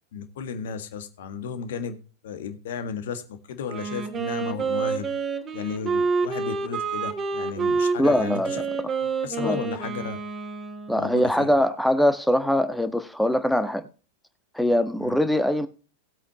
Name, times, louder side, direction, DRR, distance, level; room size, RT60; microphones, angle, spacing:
voice 1, 0.1-5.1 5.5-8.6 9.2-10.2 10.9-11.5 15.0-15.2, left 6 dB, 55° left, 1.7 m, -34 dB
Wind instrument woodwind instrument, 3.6-11.4, right 4 dB, 20° right, 2.6 m, -28 dB
voice 2, 8.0-8.6 9.4-9.6 10.9-13.9 14.5-15.7, equal, ahead, 1.3 m, -22 dB
19.0 x 8.3 x 2.9 m
figure-of-eight pair, 90°, 0 cm